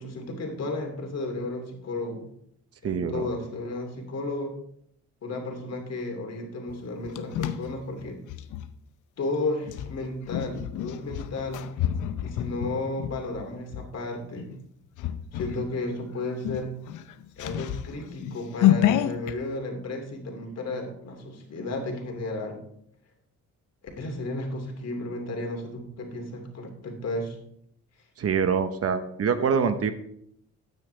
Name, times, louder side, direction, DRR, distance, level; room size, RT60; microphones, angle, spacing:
voice 1, 0.0-2.2 2.8-4.5 5.2-8.2 9.2-11.6 12.2-14.5 15.3-16.8 17.4-22.6 24.0-27.4, left 2 dB, 55° left, 3 dB, 2.9 m, -33 dB
voice 2, 2.8-3.3 28.2-29.9, right 6 dB, 50° right, 10 dB, 1.1 m, -25 dB
sound 1, 6.7-8.7 9.6-13.9 14.4-14.6 15.0-15.6 16.0-16.1 16.4-19.3, left 12 dB, 85° left, 0.8 m, -28 dB
13.5 x 9.3 x 3.4 m, 0.71 s
cardioid pair, 90°, 30 cm